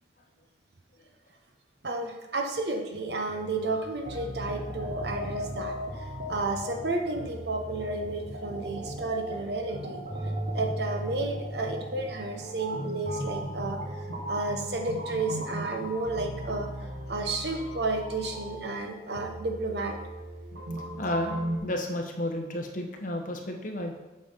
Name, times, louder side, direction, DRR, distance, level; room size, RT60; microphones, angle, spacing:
voice 1, 1.8-10.0 10.5-13.8 14.3-16.7 17.1-20.0, right 2 dB, 60° right, 3 dB, 1.2 m, -32 dB
sound 1, 3.3-21.6, right 1 dB, 40° right, 1.3 m, -40 dB
sound 2, 4.0-17.8 20.5-21.6, right 1 dB, 80° right, 1.4 m, -38 dB
voice 2, 21.0-24.0, left 1 dB, 45° left, 2 dB, 1.3 m, -32 dB
8.2 x 6.3 x 5.6 m, 1.1 s
head